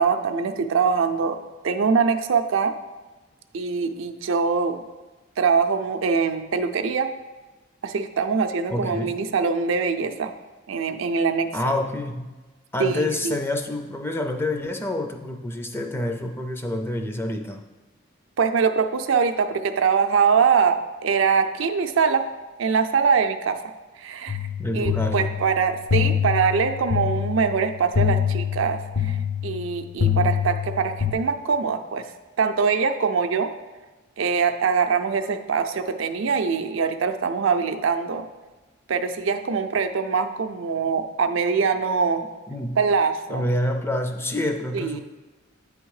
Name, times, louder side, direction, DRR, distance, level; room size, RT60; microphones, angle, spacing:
voice 1, 0.0-1.4 1.6-2.7 3.5-4.8 5.4-7.1 7.8-10.3 10.7-11.5 12.8-13.3 18.4-22.2 22.6-23.6 24.0-24.4 24.7-29.2 29.4-32.1 32.4-33.5 34.2-38.3 38.9-42.2 42.8-43.4 44.7-45.0, right 5 dB, 70° right, 8 dB, 0.4 m, -23 dB
voice 2, 8.7-9.2 11.5-12.3 12.7-17.6 24.6-25.4 42.5-42.8 43.3-45.0, left 1 dB, 10° left, 5 dB, 0.4 m, -27 dB
sound 1, 24.3-31.1, left 9 dB, 55° left, 0.7 m, -25 dB
8.4 x 3.5 x 4.8 m, 1.2 s
head